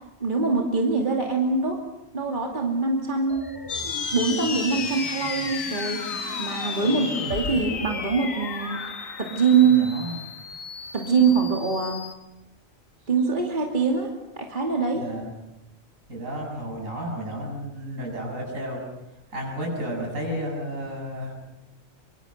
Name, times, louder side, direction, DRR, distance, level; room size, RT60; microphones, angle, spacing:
voice 1, 0.2-1.8 2.1-3.5 4.1-8.8 9.2-9.8 10.9-12.0 13.1-14.1 14.3-15.1, right 5 dB, 40° right, 1 dB, 2.8 m, -23 dB
sound 1, 3.3-8.3, left 1 dB, 15° left, 1.5 m, -40 dB
sound 2, 3.7-12.1, left 5 dB, 90° left, 2.0 m, -33 dB
voice 2, 6.8-7.1 9.6-10.2 14.9-15.3 16.1-18.8 19.3-21.4, equal, 80° right, 0 dB, 8.1 m, -32 dB
25.5 x 24.5 x 6.6 m, 0.97 s
omnidirectional pair, 1.3 m